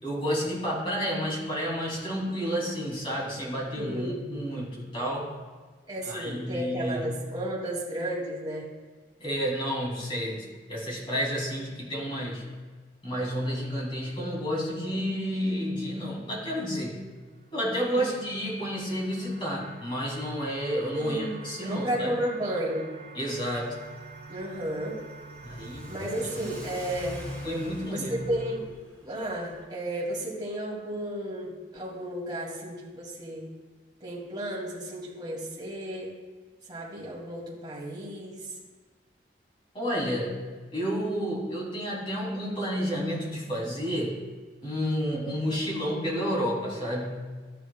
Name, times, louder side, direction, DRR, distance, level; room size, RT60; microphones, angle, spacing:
voice 1, 0.0-5.3 6.0-7.1 9.2-12.5 13.0-17.0 17.5-22.1 23.1-23.7 25.4-26.6 27.4-28.3 39.7-40.4 40.7-44.2 44.6-47.3, equal, 30° left, -4 dB, 3.1 m, -30 dB
voice 2, 3.7-4.2 5.9-8.7 17.9-18.1 20.9-22.9 24.3-25.0 25.9-27.2 27.9-28.7 29.0-33.4 34.0-36.1 36.7-38.5 45.5-45.6, right 1 dB, 25° right, -5 dB, 2.7 m, -33 dB
sound 1, 16.6-28.6, right 4 dB, 65° right, 1.7 m, -48 dB
Car / Accelerating revving vroom, 23.5-29.6, equal, 10° left, 2.2 m, -45 dB
13.5 x 10.0 x 2.4 m, 1.4 s
head